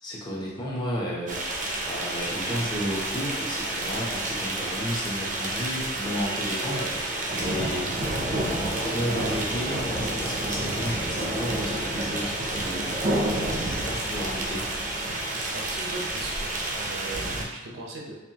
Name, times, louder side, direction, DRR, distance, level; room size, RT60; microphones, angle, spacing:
voice 1, 0.0-1.4 1.8-8.0 8.6-13.0 13.5-14.7 15.3-15.4, equal, 20° left, -4 dB, 0.8 m, -33 dB
sound 1, 1.3-17.4, right 1 dB, 40° right, 0.6 m, -29 dB
voice 2, 15.5-18.2, right 2 dB, 75° right, -2 dB, 0.7 m, -38 dB
4.4 x 2.6 x 2.8 m, 1.1 s
head